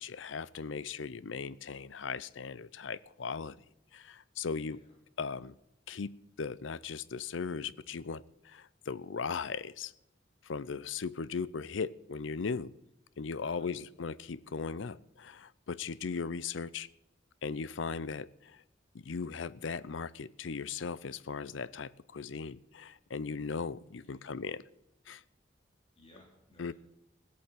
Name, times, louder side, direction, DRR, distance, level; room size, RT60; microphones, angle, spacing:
voice 1, 0.0-3.6 3.9-4.8 5.2-5.5 5.9-6.1 6.4-9.9 10.5-12.7 13.2-16.9 17.4-18.3 18.9-24.6 25.1-25.2 26.6-26.7, left 5 dB, 80° left, 0.6 m, -38 dB
voice 2, 4.5-5.0 13.3-13.8 23.9-24.4 26.0-26.7, left 1 dB, 30° left, 3.2 m, -61 dB
17.5 x 8.5 x 7.9 m
head